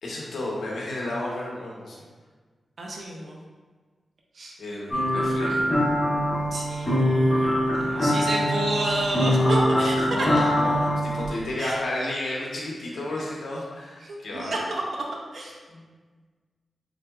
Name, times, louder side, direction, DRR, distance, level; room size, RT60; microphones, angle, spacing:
voice 1, 0.0-2.0 4.6-5.7 7.3-7.4 7.7-8.2 8.8-8.9 9.4-9.8 10.1-14.6 15.7-15.8, left 1 dB, 75° left, -4 dB, 0.8 m, -32 dB
voice 2, 2.8-3.4 4.3-4.6 6.5-10.3 11.6-11.8 14.0-15.6, right 2 dB, 50° right, -2 dB, 0.4 m, -30 dB
sound 1, 4.9-11.3, equal, 20° left, 1.2 m, -23 dB
3.7 x 3.4 x 2.3 m, 1.4 s
wide cardioid pair, 175°, 0 cm